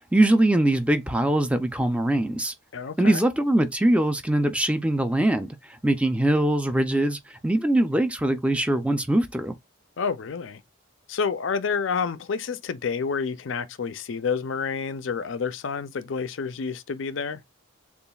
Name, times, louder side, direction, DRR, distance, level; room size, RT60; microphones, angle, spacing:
voice 1, 0.1-2.5 3.0-9.6, right 1 dB, 5° right, 0.4 m, -22 dB
voice 2, 2.7-3.2 10.0-10.6 11.1-17.4, left 5 dB, 65° left, 0.5 m, -29 dB
6.8 x 2.4 x 2.3 m
head